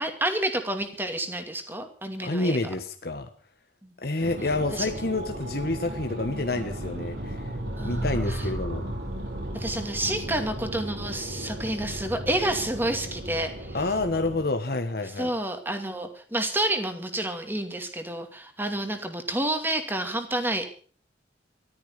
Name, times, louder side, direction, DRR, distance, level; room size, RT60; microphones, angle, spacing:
voice 1, 0.0-2.6 3.8-3.9 4.7-4.9 7.8-8.5 9.5-13.8 15.2-20.7, right 1 dB, 10° right, 6 dB, 2.4 m, -29 dB
voice 2, 2.2-3.3 4.0-7.5 7.8-8.8 13.7-15.3, left 2 dB, 55° left, 6 dB, 1.4 m, -28 dB
sound 1, 4.2-14.4, right 1 dB, 70° right, 6.2 m, -35 dB
14.0 x 13.5 x 6.7 m, 0.44 s
head